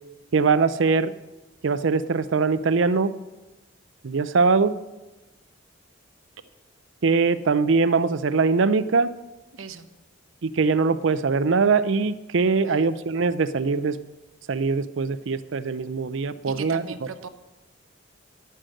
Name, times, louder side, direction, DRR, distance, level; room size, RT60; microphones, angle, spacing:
voice 1, 0.3-1.1 1.6-3.1 4.0-4.7 7.0-9.1 10.4-14.0 14.5-16.8, right 4 dB, 65° right, 14 dB, 0.5 m, -22 dB
voice 2, 9.5-9.9 12.6-12.9 16.4-17.3, right 5 dB, 85° right, 9 dB, 0.8 m, -39 dB
11.5 x 6.4 x 7.6 m, 1.1 s
head